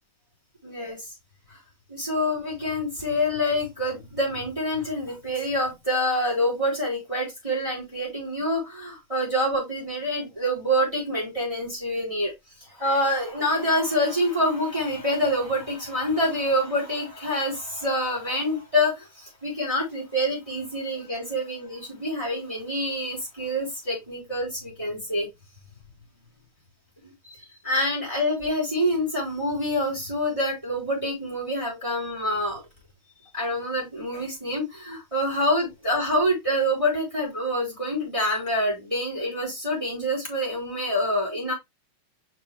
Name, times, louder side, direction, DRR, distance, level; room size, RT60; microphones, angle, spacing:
voice 1, 0.6-1.1 1.5-1.6 1.9-12.3 12.6-25.3 27.0-27.4 27.6-32.6 33.3-41.5, equal, 10° right, 4.3 m, -26 dB
5.9 x 5.1 x 3.6 m
omnidirectional pair, 3.4 m